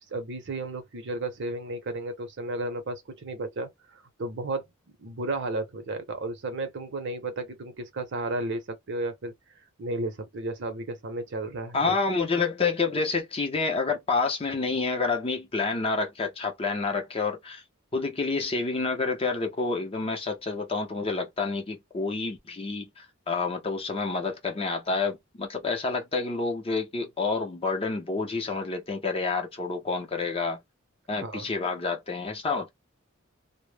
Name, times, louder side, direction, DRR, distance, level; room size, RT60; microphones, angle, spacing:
voice 1, 0.1-9.3 9.8-11.9 31.2-31.5, right 2 dB, 60° right, 0.7 m, -33 dB
voice 2, 11.7-17.6 17.9-30.6 31.1-32.7, left 4 dB, 25° left, 0.6 m, -28 dB
2.0 x 2.0 x 3.2 m
head